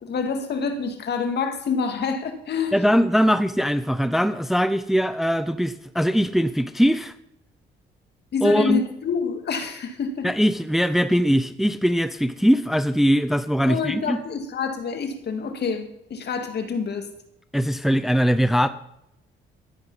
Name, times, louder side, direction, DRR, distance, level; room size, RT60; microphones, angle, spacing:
voice 1, 0.0-2.8 8.3-10.3 13.6-17.1, left 5 dB, 55° left, 7 dB, 2.1 m, -27 dB
voice 2, 2.7-7.1 8.4-8.8 10.2-14.2 17.5-18.7, equal, ahead, 12 dB, 0.6 m, -21 dB
12.5 x 9.6 x 5.5 m, 0.80 s
cardioid pair, 90°, 20 cm